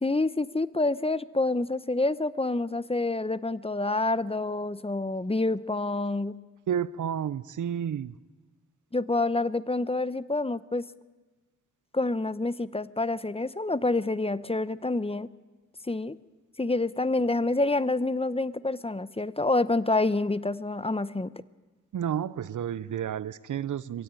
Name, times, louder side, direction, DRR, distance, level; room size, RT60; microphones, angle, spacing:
voice 1, 0.0-6.4 8.9-10.8 11.9-15.3 15.9-16.2 16.6-21.3, left 2 dB, 20° left, 17 dB, 0.8 m, -27 dB
voice 2, 6.7-8.1 21.9-24.0, right 9 dB, 90° right, 18 dB, 0.6 m, -31 dB
23.0 x 16.0 x 9.0 m, 1.2 s
cardioid pair, 45°, 30 cm